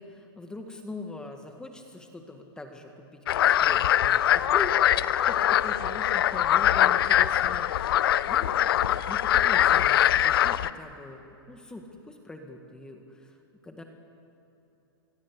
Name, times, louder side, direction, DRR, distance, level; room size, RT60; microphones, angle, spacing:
voice 1, 0.0-8.6 9.1-13.4 13.6-13.8, left 2 dB, 5° left, 4 dB, 1.8 m, -42 dB
sound 1, 3.3-10.7, left 11 dB, 65° left, 0.8 m, -22 dB
26.5 x 21.5 x 8.3 m, 3.0 s
hypercardioid pair, 145°, 13 cm